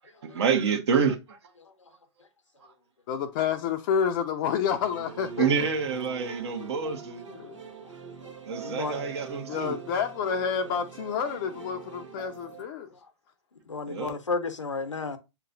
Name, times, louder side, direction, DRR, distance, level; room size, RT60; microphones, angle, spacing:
voice 1, 0.2-1.4 2.6-2.7 5.4-7.2 8.5-9.8 13.9-14.1, right 6 dB, 65° right, 1.0 m, -27 dB
voice 2, 3.1-5.5 7.3-7.6 9.5-12.9, left 7 dB, 45° left, 0.5 m, -29 dB
sound 1, 4.7-12.6, right 5 dB, 85° right, 1.2 m, -43 dB
voice 3, 8.6-9.1 12.9-13.0 13.6-15.2, left 4 dB, 90° left, 0.8 m, -33 dB
7.0 x 2.9 x 2.5 m
figure-of-eight pair, 110°, 15 cm